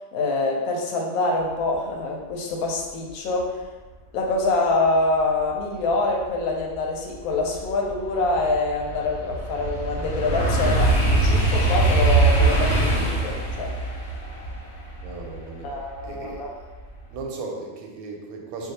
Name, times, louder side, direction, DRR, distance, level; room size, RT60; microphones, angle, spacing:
voice 1, 0.1-3.6 4.1-13.7 15.6-16.5, left 2 dB, 90° left, 0 dB, 1.1 m, -25 dB
sound 1, 6.7-6.8 7.3-16.3 16.8-17.1, right 2 dB, 55° left, 0.9 m, -22 dB
voice 2, 15.0-15.7 16.0-16.5 17.1-18.7, right 3 dB, 90° right, 1 dB, 1.1 m, -36 dB
2.6 x 2.3 x 4.0 m, 1.3 s
omnidirectional pair, 1.5 m